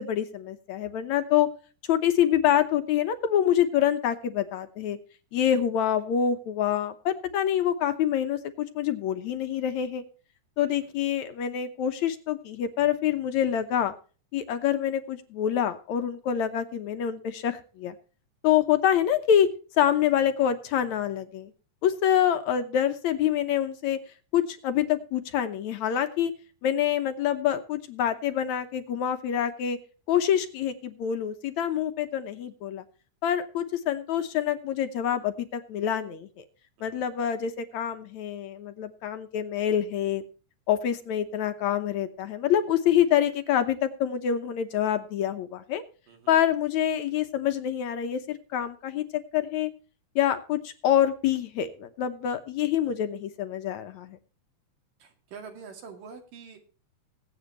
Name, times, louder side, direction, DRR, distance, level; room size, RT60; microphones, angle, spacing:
voice 1, 0.0-1.5 1.9-5.0 5.3-10.0 10.6-13.9 14.3-17.9 18.4-19.5 19.8-21.5 21.8-24.0 24.3-26.3 26.6-29.8 30.1-32.8 33.2-36.4 36.8-40.2 40.7-45.8 46.3-49.7 50.2-54.2, left 10 dB, 70° left, 9 dB, 2.1 m, -26 dB
voice 2, 36.8-37.2 46.1-46.3 55.0-56.6, right 5 dB, 85° right, 5 dB, 4.1 m, -46 dB
21.5 x 8.6 x 3.0 m, 0.37 s
omnidirectional pair, 3.8 m